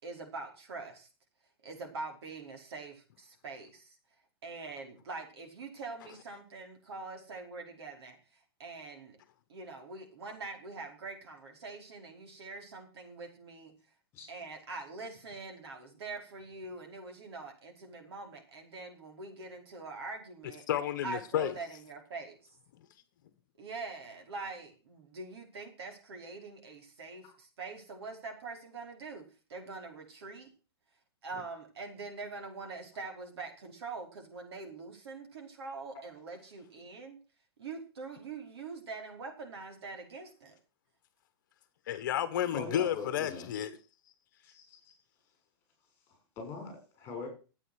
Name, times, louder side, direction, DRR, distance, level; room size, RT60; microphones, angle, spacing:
voice 1, 0.0-1.1 1.6-4.0 4.4-9.2 9.5-13.7 14.3-20.6 21.0-22.5 23.6-30.5 31.2-37.2 37.6-40.5, right 3 dB, 75° right, 4.9 m, -44 dB
voice 2, 20.7-21.5 41.9-43.7, left 10 dB, 50° left, 1.3 m, -31 dB
voice 3, 42.5-43.5 44.4-44.9 46.4-47.3, left 3 dB, 20° left, 6.8 m, -42 dB
13.0 x 8.8 x 6.4 m
supercardioid pair, 170°, 13 cm